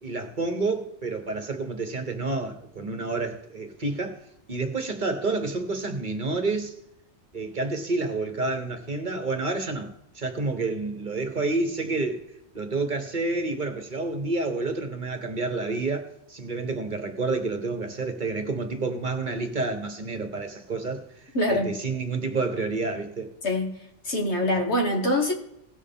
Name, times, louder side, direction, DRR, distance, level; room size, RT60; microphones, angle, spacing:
voice 1, 0.0-4.2 4.5-6.7 7.3-12.2 12.5-23.3, right 3 dB, 45° right, 1.1 m, -29 dB
voice 2, 21.3-21.7 23.4-23.7 24.1-25.3, left 1 dB, 70° left, 2.1 m, -24 dB
17.5 x 6.5 x 3.6 m
omnidirectional pair, 1.2 m